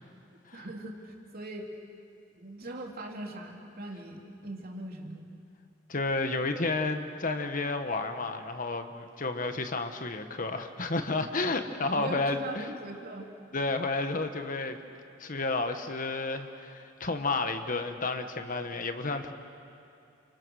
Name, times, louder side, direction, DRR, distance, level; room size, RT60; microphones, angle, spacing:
voice 1, 0.5-1.8 2.4-5.3 11.9-13.3, right 1 dB, 50° right, 1 dB, 3.2 m, -40 dB
voice 2, 5.9-12.7 13.5-14.8 15.2-19.3, left 3 dB, 45° left, 7 dB, 1.4 m, -31 dB
30.0 x 29.0 x 6.5 m, 2.6 s
head